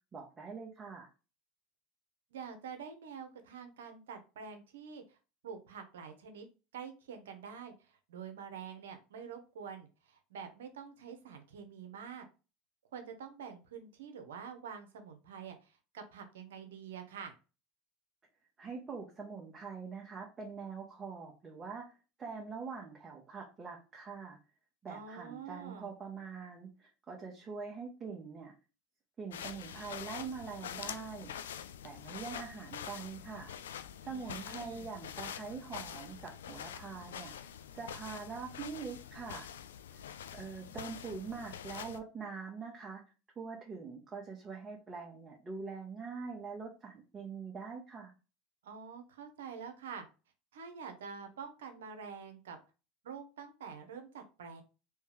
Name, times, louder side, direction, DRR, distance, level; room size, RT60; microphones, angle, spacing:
voice 1, 0.1-1.1 18.6-21.9 22.2-24.4 24.8-28.5 29.2-31.3 31.8-33.5 34.0-37.3 37.7-39.5 39.9-40.0 40.3-43.0 43.4-48.1, right 5 dB, 30° right, -1 dB, 1.0 m, -44 dB
voice 2, 2.3-5.2 5.4-6.5 6.7-12.3 12.9-17.3 24.9-25.9 34.1-34.9 48.6-50.1 50.5-52.6 53.0-54.6, right 6 dB, 80° right, 7 dB, 0.8 m, -47 dB
sound 1, 29.3-42.0, left 9 dB, 85° left, 0.3 m, -45 dB
3.4 x 2.8 x 3.3 m, 0.31 s
hypercardioid pair, 85°, 0 cm